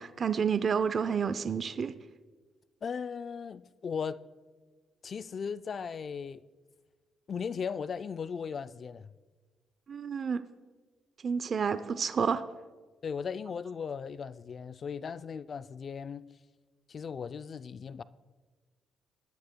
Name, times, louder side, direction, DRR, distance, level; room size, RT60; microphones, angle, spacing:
voice 1, 0.0-1.9 9.9-10.4 11.2-12.4, right 6 dB, 50° right, 0.5 m, -29 dB
voice 2, 2.8-4.2 5.0-6.4 7.3-9.1 13.0-16.3 16.9-18.0, left 6 dB, 45° left, 0.4 m, -37 dB
21.0 x 12.5 x 2.2 m
cardioid pair, 90°, 0 cm